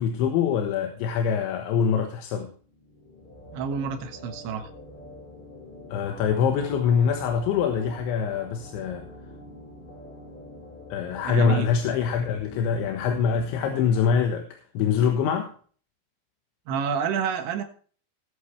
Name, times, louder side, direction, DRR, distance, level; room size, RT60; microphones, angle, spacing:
voice 1, 0.0-2.5 5.9-9.1 10.9-15.5, left 7 dB, 85° left, 4 dB, 3.7 m, -24 dB
sound 1, 2.6-14.2, left 1 dB, 50° left, 5.8 m, -45 dB
voice 2, 3.5-4.7 11.2-11.7 16.7-17.6, right 7 dB, 80° right, 6 dB, 3.7 m, -28 dB
19.5 x 8.5 x 3.3 m, 0.43 s
omnidirectional pair, 5.2 m